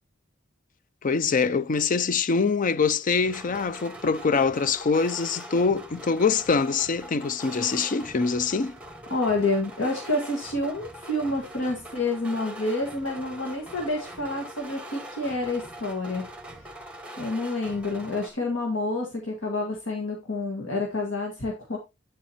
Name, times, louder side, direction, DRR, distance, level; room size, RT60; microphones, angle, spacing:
voice 1, 1.0-8.8, left 5 dB, 40° left, 0.5 m, -24 dB
sound 1, 3.2-18.3, right 1 dB, 5° right, 1.4 m, -42 dB
voice 2, 9.1-16.3 17.2-21.8, left 2 dB, 80° left, 1.7 m, -28 dB
9.2 x 7.0 x 2.9 m
head